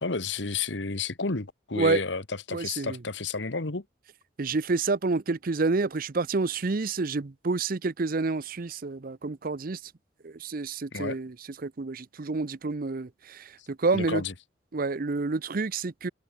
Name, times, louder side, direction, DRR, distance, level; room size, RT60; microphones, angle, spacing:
voice 1, 0.0-3.8 10.9-11.2 13.9-14.3, left 4 dB, 75° left, 1.5 m, -31 dB
voice 2, 2.5-3.0 4.4-9.8 10.2-11.3 11.6-14.2 14.7-16.1, right 3 dB, 50° right, 0.6 m, -28 dB
head